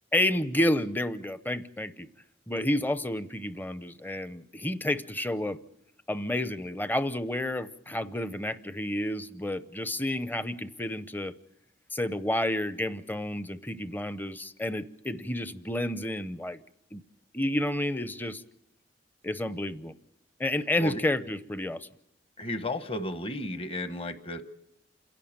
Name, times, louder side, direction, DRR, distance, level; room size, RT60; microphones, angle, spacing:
voice 1, 0.1-2.1 2.5-5.6 6.1-11.3 11.9-16.6 16.9-17.0 17.3-18.4 19.2-19.9 20.4-21.9, left 1 dB, 10° left, 0.7 m, -30 dB
voice 2, 22.4-24.4, left 1 dB, 30° left, 1.1 m, -33 dB
28.5 x 11.5 x 8.8 m
head